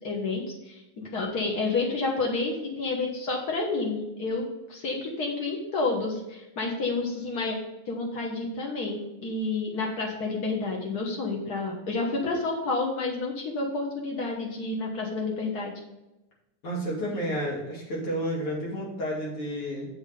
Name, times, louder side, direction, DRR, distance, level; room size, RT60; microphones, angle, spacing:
voice 1, 0.0-4.4 4.7-7.6 7.9-15.7, left 3 dB, 70° left, -1 dB, 0.9 m, -30 dB
voice 2, 16.6-19.9, equal, 45° left, -4 dB, 3.2 m, -31 dB
7.4 x 6.3 x 5.1 m, 0.97 s
omnidirectional pair, 3.8 m